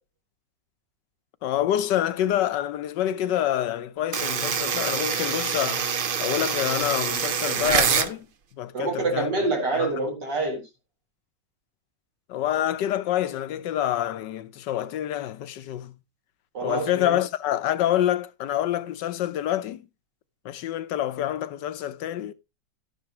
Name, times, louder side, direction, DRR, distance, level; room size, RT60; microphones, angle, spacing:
voice 1, 1.4-5.9 6.2-8.3 8.5-9.3 9.7-9.9 12.3-15.9 16.6-19.9 20.4-22.3, left 12 dB, 80° left, 1.4 m, -27 dB
sound 1, 4.1-8.1, right 6 dB, 55° right, 0.6 m, -25 dB
voice 2, 8.7-10.6 16.5-17.2, right 3 dB, 75° right, 4.6 m, -26 dB
12.5 x 9.8 x 3.0 m
omnidirectional pair, 1.9 m